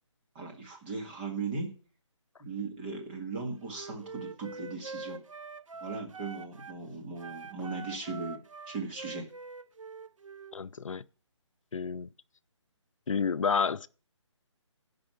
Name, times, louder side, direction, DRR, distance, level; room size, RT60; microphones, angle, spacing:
voice 1, 0.4-1.8 2.4-5.2 5.8-8.4 8.7-9.3, right 4 dB, 20° right, 1.9 m, -38 dB
Wind instrument woodwind instrument, 3.7-6.8 7.2-10.6, right 4 dB, 90° right, 0.8 m, -44 dB
voice 2, 10.5-11.1 11.7-12.1 13.1-13.9, left 6 dB, 90° left, 0.5 m, -30 dB
11.5 x 5.2 x 7.9 m
hypercardioid pair, 165°, 16 cm